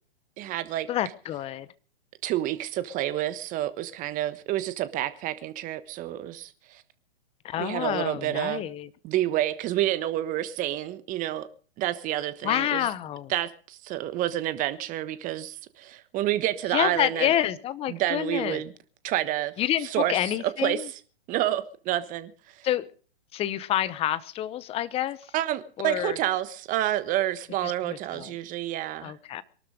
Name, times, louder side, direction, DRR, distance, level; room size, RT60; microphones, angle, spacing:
voice 1, 0.4-0.9 2.2-6.8 7.6-8.6 9.0-11.5 11.8-12.9 13.3-17.3 17.9-18.7 19.0-19.5 19.8-20.2 20.6-20.8 21.3-22.7 25.3-29.1, right 13 dB, 25° right, 1.3 m, -29 dB
voice 2, 0.9-1.7 7.4-8.9 12.4-13.3 16.7-18.6 19.6-20.9 22.6-22.9 23.3-25.2 25.8-26.2 27.6-28.3 29.0-29.4, left 12 dB, 20° left, 0.9 m, -28 dB
23.0 x 12.5 x 5.1 m
hypercardioid pair, 130°, 33 cm